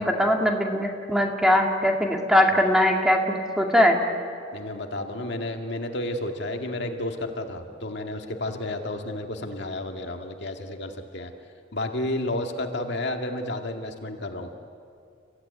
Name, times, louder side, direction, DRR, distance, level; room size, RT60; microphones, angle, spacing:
voice 1, 0.0-4.0, left 1 dB, 5° right, 2 dB, 2.2 m, -21 dB
voice 2, 4.5-11.3 11.7-14.6, left 1 dB, 60° left, 4 dB, 2.0 m, -31 dB
30.0 x 16.0 x 9.6 m, 2.4 s
head